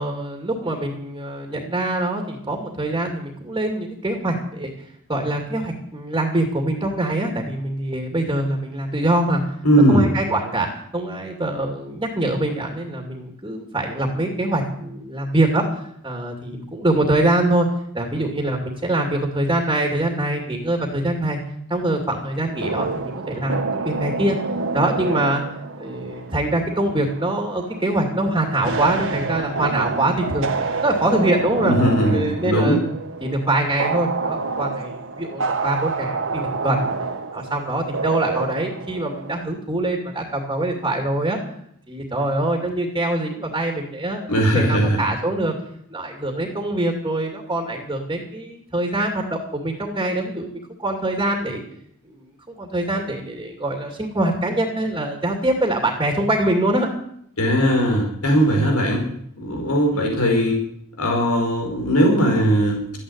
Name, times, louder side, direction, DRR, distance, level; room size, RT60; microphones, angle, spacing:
voice 1, 0.0-4.7 5.1-9.4 9.9-10.7 10.9-15.6 16.0-17.7 17.9-21.4 21.7-24.4 24.7-25.4 25.8-31.8 32.1-32.8 33.2-36.9 37.3-41.4 41.9-45.5 45.9-51.6 52.1-56.9 59.9-60.2, right 1 dB, 20° right, 2 dB, 2.5 m, -24 dB
voice 2, 9.6-10.1 31.6-32.8 44.3-45.0 57.4-59.0 59.4-60.6 61.0-62.8, equal, 85° left, 1 dB, 5.2 m, -18 dB
sound 1, 22.5-39.4, right 4 dB, 60° right, 1.5 m, -28 dB
14.0 x 10.0 x 9.9 m, 0.69 s
head